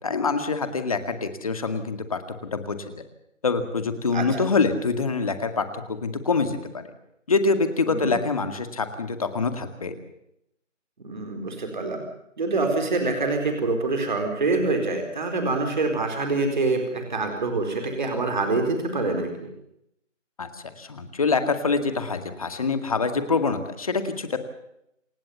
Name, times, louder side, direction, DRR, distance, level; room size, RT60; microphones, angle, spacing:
voice 1, 0.0-2.2 2.5-3.0 3.4-6.8 7.3-10.0 20.4-20.5 20.8-24.4, left 4 dB, 30° left, 9 dB, 2.1 m, -25 dB
voice 2, 7.9-8.2 11.0-12.0 12.4-19.5, right 3 dB, 40° right, 4 dB, 4.3 m, -25 dB
28.0 x 16.0 x 7.1 m, 0.78 s
figure-of-eight pair, 170°, 37 cm